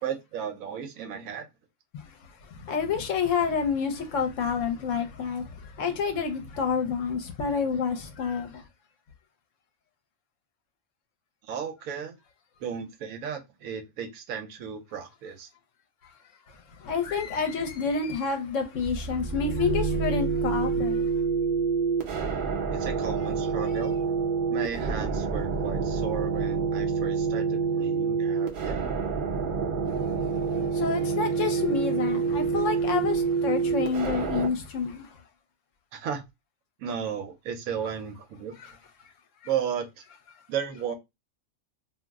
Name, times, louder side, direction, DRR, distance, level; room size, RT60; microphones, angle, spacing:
voice 1, 0.0-1.5 11.4-12.2 12.6-15.5 22.7-24.0 24.5-29.2 35.9-36.2 36.8-38.5 39.4-40.0 40.5-40.9, right 8 dB, 80° right, 1.1 m, -34 dB
voice 2, 2.6-8.6 16.8-21.1 30.7-35.1, left 5 dB, 70° left, 1.0 m, -28 dB
sound 1, 18.8-34.5, right 5 dB, 50° right, 0.6 m, -27 dB
2.6 x 2.0 x 3.4 m
omnidirectional pair, 1.4 m